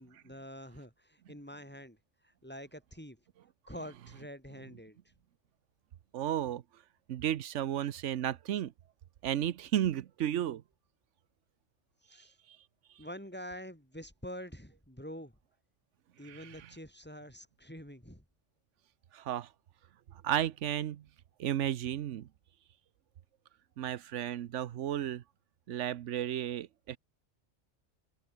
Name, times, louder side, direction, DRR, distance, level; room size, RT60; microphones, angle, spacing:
voice 1, 0.0-2.0 2.2-3.2 3.7-5.0 12.1-12.4 13.0-15.3 16.2-18.2, equal, 10° left, 5.5 m, -46 dB
voice 2, 6.1-6.6 7.1-8.7 9.2-10.6 12.5-12.6 16.2-16.7 19.1-19.5 20.1-21.0 21.4-22.3 23.8-25.2 25.7-27.0, right 11 dB, 90° right, 1.1 m, -33 dB
omnidirectional pair, 1.2 m